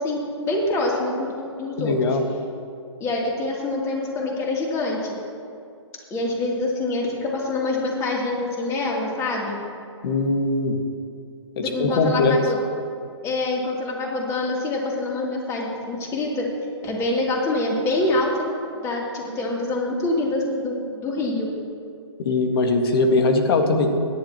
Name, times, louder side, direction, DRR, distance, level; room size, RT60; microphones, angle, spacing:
voice 1, 0.0-2.2 3.0-5.1 6.1-9.6 11.6-12.6 13.2-16.5 16.8-18.5 18.8-21.5, left 2 dB, 20° left, -3 dB, 3.2 m, -25 dB
voice 2, 1.8-2.2 10.0-10.8 11.6-12.4 22.2-23.9, left 3 dB, 50° left, 4 dB, 1.9 m, -21 dB
28.5 x 11.0 x 3.1 m, 2.4 s
hypercardioid pair, 145°, 16 cm